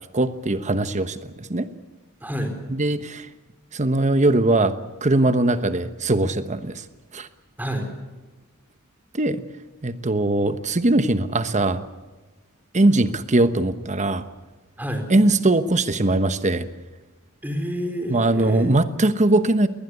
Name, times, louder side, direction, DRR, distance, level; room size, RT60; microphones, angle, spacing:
voice 1, 0.1-1.7 2.7-3.3 3.7-6.8 7.1-7.3 9.1-9.4 9.8-11.8 12.7-14.2 15.1-16.7 18.1-19.7, right 2 dB, 35° right, 11 dB, 1.1 m, -21 dB
voice 2, 2.2-2.5 7.6-7.9 14.8-15.1 17.4-18.7, equal, 10° right, 5 dB, 4.1 m, -28 dB
21.0 x 20.0 x 8.3 m, 1.2 s
head